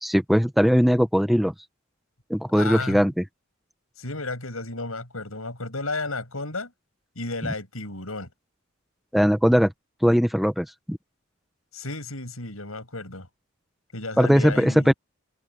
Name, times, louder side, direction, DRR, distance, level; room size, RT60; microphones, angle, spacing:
voice 1, 0.0-1.5 2.3-3.1 9.1-9.7 10.0-11.0 14.2-14.9, equal, ahead, 1.0 m, -20 dB
voice 2, 2.5-3.1 4.0-6.7 7.2-8.3 11.7-13.3 13.9-14.9, left 2 dB, 85° left, 7.6 m, -33 dB
open air
head